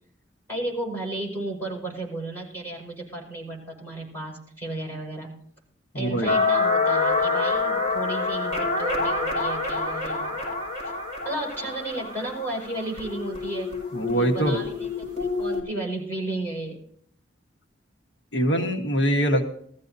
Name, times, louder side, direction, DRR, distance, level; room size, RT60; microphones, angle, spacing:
voice 1, 0.5-5.4 5.9-10.5 10.8-10.9 11.2-13.7 14.1-16.8, right 2 dB, 15° left, -3 dB, 5.5 m, -33 dB
voice 2, 5.9-6.4 13.9-14.6 18.3-19.4, right 1 dB, 90° left, 2 dB, 1.5 m, -23 dB
sound 1, 6.3-15.6, left 3 dB, 40° left, 5.1 m, -27 dB
20.0 x 14.0 x 2.7 m, 0.64 s
head